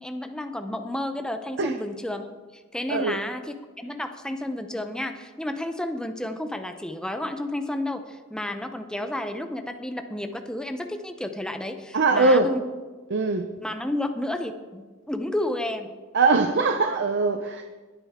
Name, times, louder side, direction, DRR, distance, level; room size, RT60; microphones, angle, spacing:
voice 1, 0.0-2.3 2.7-12.6 13.6-15.9, left 1 dB, 5° left, 6 dB, 0.7 m, -31 dB
voice 2, 11.9-12.5 13.1-13.5 16.1-17.6, right 3 dB, 55° right, 5 dB, 0.7 m, -21 dB
21.0 x 8.8 x 3.7 m, 1.3 s
head